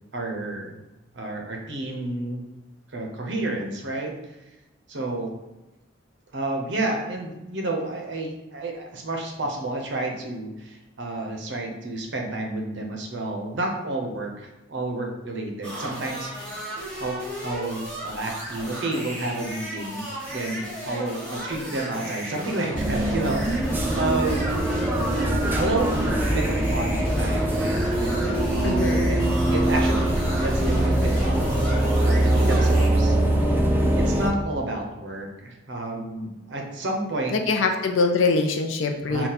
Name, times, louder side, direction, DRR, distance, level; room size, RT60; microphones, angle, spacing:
voice 1, 0.1-0.8 1.1-2.4 2.9-4.1 4.9-5.3 6.3-16.7 17.0-23.4 23.9-24.7 25.5-28.6 29.1-31.4 32.0-33.2 34.0-37.4 39.1-39.3, right 2 dB, 60° right, 1 dB, 0.6 m, -30 dB
sound 1, 15.6-32.9, equal, 5° left, 1.0 m, -35 dB
sound 2, 22.7-34.3, right 1 dB, 10° right, 0.3 m, -22 dB
voice 2, 28.6-29.1 37.3-39.3, left 4 dB, 80° left, 4 dB, 0.5 m, -23 dB
3.9 x 2.3 x 4.0 m, 1.0 s
head